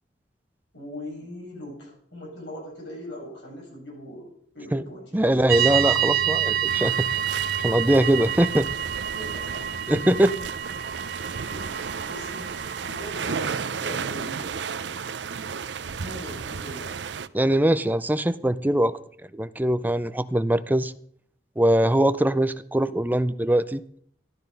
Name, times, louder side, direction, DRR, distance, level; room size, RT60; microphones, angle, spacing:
voice 1, 0.7-4.3 4.5-5.4 9.1-9.7 11.5-14.5 16.0-17.0, equal, 80° left, -2 dB, 7.8 m, -40 dB
voice 2, 5.1-7.2 7.6-8.7 9.9-10.3 17.3-19.0 19.3-20.9 21.6-23.8, right 1 dB, 10° right, 13 dB, 0.5 m, -22 dB
sound 1, 5.5-13.1, right 10 dB, 60° right, 1.1 m, -28 dB
sound 2, 6.7-17.3, right 6 dB, 80° right, 0.6 m, -34 dB
12.5 x 12.5 x 5.4 m, 0.63 s
head